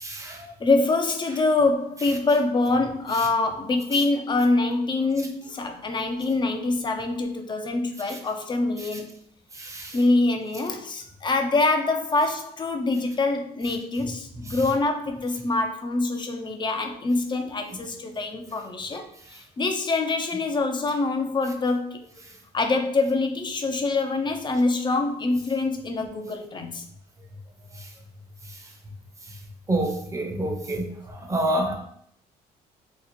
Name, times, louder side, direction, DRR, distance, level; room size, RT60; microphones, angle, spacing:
voice 1, 0.0-0.5 9.6-9.9 29.7-30.9 31.3-31.8, right 1 dB, 20° right, 2 dB, 0.8 m, -27 dB
voice 2, 0.6-9.1 9.9-19.0 19.3-22.0 22.5-26.8, left 3 dB, 25° left, 5 dB, 0.5 m, -25 dB
2.9 x 2.4 x 4.1 m, 0.66 s
cardioid pair, 110°, 17 cm